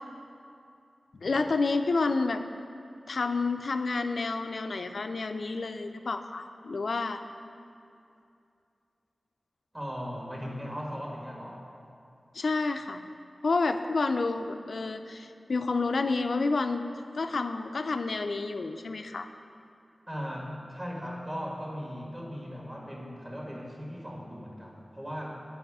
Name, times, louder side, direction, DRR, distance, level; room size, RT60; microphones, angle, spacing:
voice 1, 1.2-2.4 3.1-7.2 12.3-13.0 13.4-16.9 17.1-19.3, left 3 dB, 75° left, 8 dB, 0.3 m, -29 dB
voice 2, 9.7-11.7 20.1-25.3, equal, 30° right, -3 dB, 1.6 m, -38 dB
7.8 x 4.8 x 4.7 m, 2.5 s
cardioid pair, 50°, 0 cm